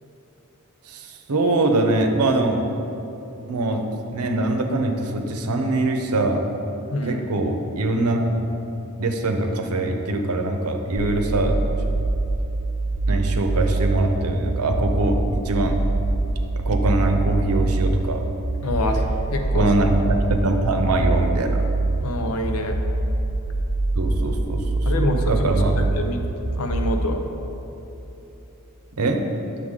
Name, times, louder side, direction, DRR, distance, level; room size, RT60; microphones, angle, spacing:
voice 1, 0.9-2.6 3.5-3.8 4.1-6.5 7.0-8.5 9.0-11.6 13.1-15.8 16.6-18.2 19.5-21.6 24.0-25.7 29.0-29.2, right 2 dB, 90° right, 4 dB, 0.7 m, -23 dB
voice 2, 6.9-7.2 18.6-19.0 19.3-19.7 22.0-22.8 24.9-26.2 26.6-27.2, left 1 dB, 70° left, 4 dB, 0.7 m, -26 dB
sound 1, 11.0-27.0, right 2 dB, 30° right, 0.4 m, -24 dB
8.1 x 6.6 x 3.7 m, 3.0 s
head